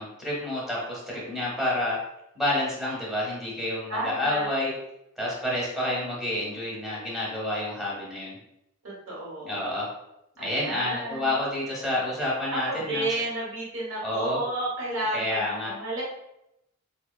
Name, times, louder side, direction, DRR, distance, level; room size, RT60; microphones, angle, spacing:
voice 1, 0.0-2.0 2.4-4.7 5.2-8.4 9.4-9.9 10.4-13.0 14.0-14.4 15.1-15.7, left 1 dB, ahead, -6 dB, 0.8 m, -29 dB
voice 2, 3.9-4.5 8.8-9.6 10.4-11.3 12.5-16.0, right 1 dB, 70° right, -5 dB, 1.0 m, -31 dB
2.8 x 2.1 x 2.2 m, 0.83 s
head